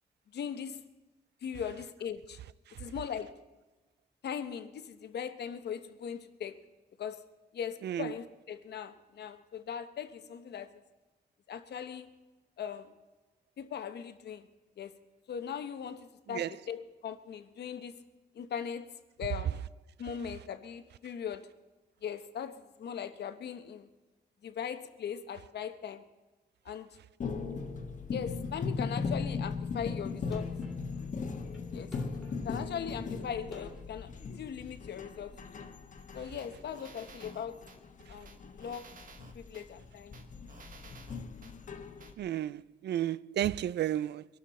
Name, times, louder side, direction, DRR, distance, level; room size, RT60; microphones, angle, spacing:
voice 1, 0.3-0.8 1.4-2.4 2.8-3.4 4.2-6.6 7.0-7.2 7.5-10.8 11.5-12.1 12.6-12.9 13.6-14.5 14.8-14.9 15.3-18.0 18.3-19.6 20.0-21.5 22.0-23.9 24.4-26.0 26.6-27.0 28.1-30.5 31.7-31.9 32.4-34.1 34.4-35.7 36.1-37.6 38.1-38.9 39.3-40.3, left 8 dB, 80° left, 1.0 m, -39 dB
sound 1, 27.2-42.1, left 4 dB, 50° left, 1.2 m, -38 dB
sound 2, 29.7-29.8 30.3-33.9, left 1 dB, ahead, 2.4 m, -49 dB
sound 3, 36.4-37.8 38.2-39.7 40.1-41.5 42.0-42.1, right 4 dB, 55° right, 1.3 m, -54 dB
voice 2, 42.2-44.3, right 12 dB, 90° right, 0.4 m, -32 dB
23.5 x 12.5 x 4.2 m
wide cardioid pair, 170°, 17 cm